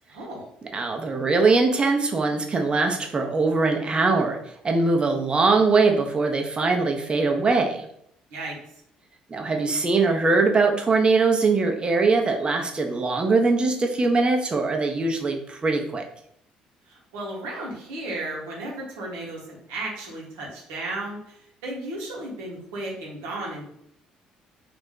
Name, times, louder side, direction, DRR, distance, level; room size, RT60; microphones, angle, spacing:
voice 1, 0.1-0.4 8.3-8.5 16.9-23.6, right 2 dB, 85° right, -3 dB, 0.9 m, -34 dB
voice 2, 0.7-4.4 4.6-7.8 9.3-16.0, right 3 dB, 30° right, 3 dB, 0.6 m, -22 dB
2.5 x 2.1 x 3.7 m, 0.73 s
supercardioid pair, 65°, 3 cm